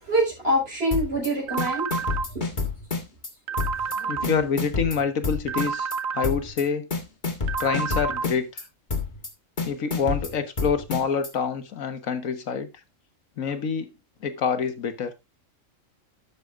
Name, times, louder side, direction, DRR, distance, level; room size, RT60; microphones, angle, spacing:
voice 1, 0.0-2.0 4.2-4.3, right 1 dB, 50° right, 5.7 m, -25 dB
sound 1, 0.9-1.3 1.6-3.3 3.6-4.0 4.2-6.0 6.2-6.6 6.9-8.6 8.9-9.3 9.6-11.3, left 4 dB, 35° left, 1.6 m, -28 dB
sound 2, 1.5-2.3 3.5-4.3 5.5-6.3 7.5-8.3, right 6 dB, 85° right, 1.4 m, -29 dB
voice 2, 3.9-5.9 6.1-6.9 7.6-8.6 9.6-12.7 13.4-13.9 14.2-15.1, left 6 dB, 90° left, 1.6 m, -26 dB
12.0 x 8.2 x 2.5 m
omnidirectional pair, 1.4 m